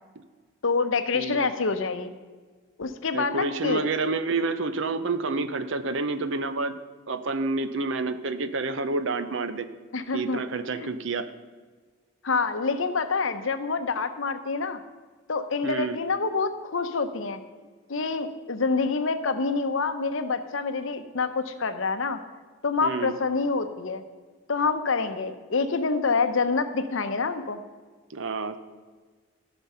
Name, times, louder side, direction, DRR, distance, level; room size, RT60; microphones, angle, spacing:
voice 1, 0.6-2.1 2.8-3.8 9.9-10.4 10.7-10.9 12.2-14.8 15.3-17.4 17.9-22.2 22.6-24.0 24.5-27.6, left 4 dB, 65° left, 9 dB, 0.7 m, -27 dB
voice 2, 1.1-1.5 3.1-6.8 7.1-9.7 10.1-11.3 15.6-16.0 22.8-23.2 28.1-28.6, right 3 dB, 60° right, 11 dB, 0.6 m, -29 dB
14.5 x 6.1 x 5.5 m, 1.4 s
head